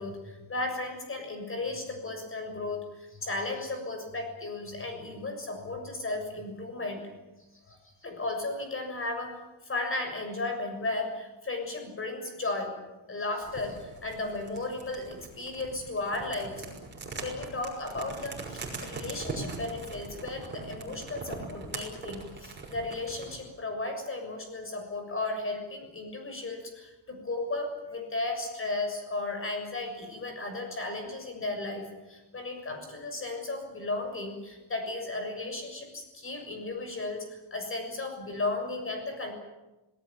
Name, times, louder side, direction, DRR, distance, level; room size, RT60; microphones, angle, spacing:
voice 1, 0.0-7.0 7.7-12.7 13.1-16.7 17.2-39.3, left 2 dB, 25° left, 5 dB, 6.9 m, -35 dB
sound 1, 13.4-23.4, right 3 dB, 20° right, 6.2 m, -41 dB
26.5 x 19.0 x 8.9 m, 1.1 s
cardioid pair, 155°, 48 cm